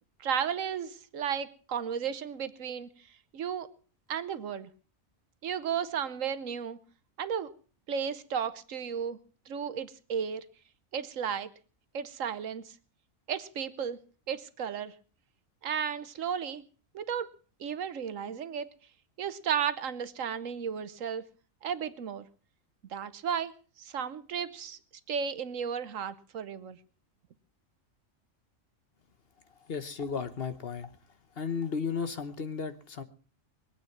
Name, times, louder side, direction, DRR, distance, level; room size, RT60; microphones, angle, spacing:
voice 1, 0.2-2.9 3.3-3.7 4.1-4.7 5.4-6.8 7.2-7.5 7.9-9.2 9.5-10.4 10.9-11.5 11.9-12.7 13.3-14.0 14.3-14.9 15.6-16.6 16.9-17.3 17.6-18.7 19.2-21.2 21.6-22.3 22.9-23.5 23.8-24.8 25.1-26.8, right 7 dB, 80° right, 13 dB, 1.3 m, -34 dB
voice 2, 29.7-30.9 31.4-33.0, left 5 dB, 50° left, 11 dB, 1.2 m, -34 dB
22.0 x 8.8 x 5.9 m, 0.39 s
omnidirectional pair, 1.3 m